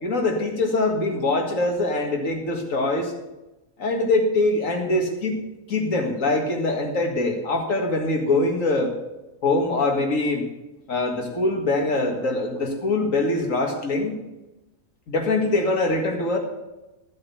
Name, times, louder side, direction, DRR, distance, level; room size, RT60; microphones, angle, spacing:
voice 1, 0.0-3.1 3.8-8.9 9.4-10.4 10.9-14.2 15.1-16.4, left 2 dB, 75° left, 2 dB, 2.2 m, -23 dB
13.5 x 7.8 x 5.7 m, 1.0 s
omnidirectional pair, 1.4 m